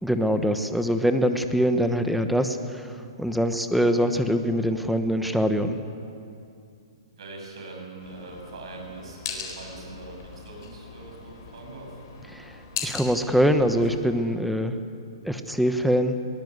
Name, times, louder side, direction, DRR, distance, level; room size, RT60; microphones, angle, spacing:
voice 1, 0.0-2.9 3.2-5.8 12.3-12.5 12.8-14.8 15.2-16.2, equal, ahead, 8 dB, 1.0 m, -23 dB
voice 2, 7.1-11.9, right 3 dB, 70° right, 0 dB, 7.6 m, -42 dB
sound 1, 8.0-14.0, left 6 dB, 45° left, 4.1 m, -39 dB
22.0 x 18.5 x 8.1 m, 2.5 s
hypercardioid pair, 160°, 3 cm